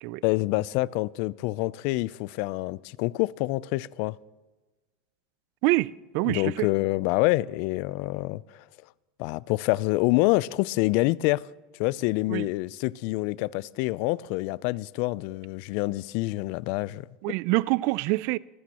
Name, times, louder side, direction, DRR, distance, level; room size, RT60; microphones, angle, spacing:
voice 1, 0.2-4.1 6.3-8.4 9.2-11.5 11.8-17.1, left 20 dB, 60° left, 0.4 m, -26 dB
voice 2, 5.6-6.7 12.3-12.5 17.2-18.4, right 21 dB, 60° right, 0.4 m, -26 dB
24.5 x 14.5 x 3.0 m
supercardioid pair, 105°, 4 cm